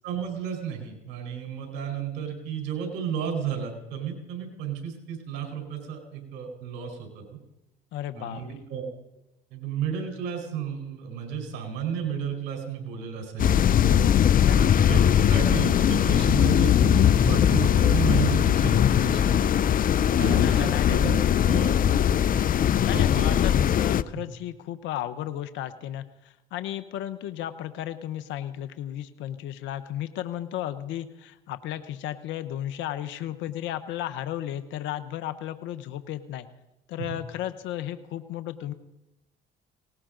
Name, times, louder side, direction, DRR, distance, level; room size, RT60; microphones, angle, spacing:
voice 1, 0.0-7.2 8.1-8.9 9.5-14.0 14.4-19.3 20.2-21.8 22.9-23.4 24.2-24.3 37.0-37.1, right 8 dB, 80° right, 4 dB, 4.6 m, -32 dB
voice 2, 7.9-8.6 14.0-15.0 20.2-21.3 22.8-36.5 36.9-38.7, left 12 dB, 75° left, 11 dB, 1.0 m, -34 dB
sound 1, 13.4-24.0, left 9 dB, 45° left, 0.6 m, -20 dB
19.5 x 18.5 x 3.9 m, 0.91 s
supercardioid pair, 70°, 19 cm